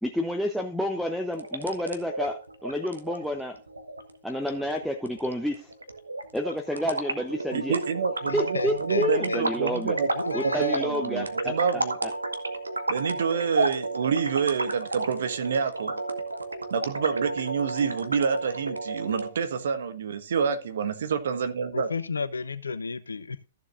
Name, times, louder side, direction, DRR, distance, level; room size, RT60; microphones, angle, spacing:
voice 1, 0.0-3.6 4.2-5.7 6.3-7.8 8.3-9.9 10.3-12.1, left 1 dB, ahead, 0.9 m, -30 dB
sound 1, 1.3-19.3, right 2 dB, 85° right, 1.2 m, -32 dB
voice 2, 7.5-12.0 12.9-16.0 16.7-21.9, right 6 dB, 60° right, 1.5 m, -28 dB
voice 3, 8.2-9.4 10.1-10.9 21.7-23.5, left 4 dB, 80° left, 0.8 m, -33 dB
14.5 x 7.2 x 2.6 m
figure-of-eight pair, 115°, 0 cm